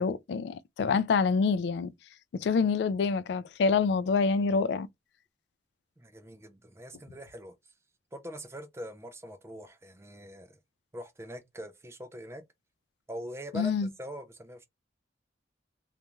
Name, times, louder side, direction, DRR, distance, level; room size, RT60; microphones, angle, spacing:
voice 1, 0.0-1.9 2.3-4.9 13.5-13.9, left 5 dB, 65° left, 0.3 m, -26 dB
voice 2, 6.0-7.7 8.1-10.6 10.9-12.4 13.1-14.7, equal, 15° right, 0.4 m, -43 dB
2.4 x 2.2 x 3.0 m
head